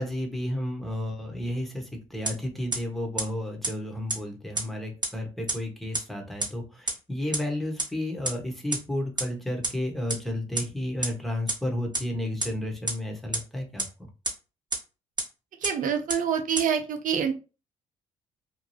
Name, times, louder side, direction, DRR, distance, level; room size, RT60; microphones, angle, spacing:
voice 1, 0.0-14.1, left 1 dB, ahead, 2 dB, 1.1 m, -32 dB
sound 1, 2.3-2.4 2.7-2.8 3.2-3.3 3.6-3.7 4.1-4.2 4.6-4.7 5.0-5.1 5.5-5.6 5.9-6.0 6.4-6.5 6.9-7.0 7.3-7.4 7.8-7.9 8.3-8.4 8.7-8.8 9.2-9.3 9.6-9.7 10.1-10.2 10.6-10.7 11.0-11.1 11.5-11.6 11.9-12.0 12.4-12.5 12.9-13.0 13.3-13.4 13.8-13.9 14.3-14.4 14.7-14.8 15.2-15.3 15.6-15.7 16.1-16.2 16.6-16.7, right 2 dB, 25° right, 1.2 m, -26 dB
voice 2, 15.6-17.3, right 7 dB, 60° right, 7 dB, 0.7 m, -26 dB
2.8 x 2.2 x 3.2 m, 0.31 s
hypercardioid pair, 55°, 16 cm